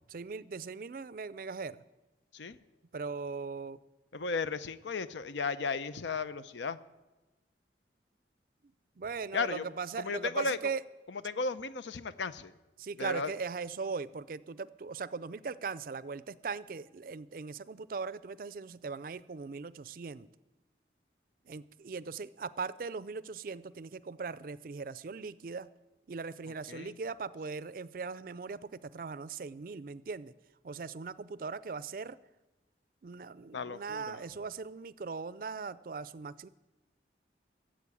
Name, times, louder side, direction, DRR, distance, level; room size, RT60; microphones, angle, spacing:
voice 1, 0.1-1.8 2.9-3.8 9.0-10.8 12.8-20.3 21.4-25.7 26.1-30.3 30.6-32.2 33.0-36.5, right 4 dB, 50° right, 18 dB, 0.4 m, -39 dB
voice 2, 2.3-2.6 4.1-6.8 9.3-9.6 10.0-10.6 11.1-12.5 13.0-13.3 26.7-27.0 33.5-34.2, left 4 dB, 85° left, 14 dB, 0.6 m, -35 dB
15.0 x 7.6 x 8.4 m, 1.1 s
head